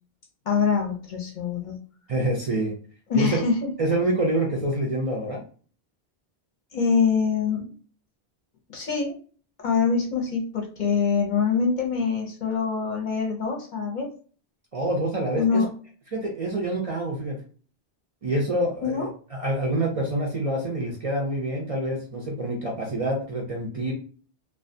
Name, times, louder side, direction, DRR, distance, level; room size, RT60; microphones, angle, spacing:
voice 1, 0.5-1.8 3.1-3.7 6.7-7.7 8.7-9.1 9.6-14.1 15.3-15.7 18.8-19.1, left 5 dB, 55° left, 0 dB, 0.7 m, -24 dB
voice 2, 2.1-2.7 3.1-3.4 3.8-5.4 14.7-15.7 16.1-17.4 18.2-23.9, right 1 dB, 45° right, -1 dB, 0.5 m, -26 dB
2.4 x 2.3 x 2.5 m, 0.41 s
omnidirectional pair, 1.0 m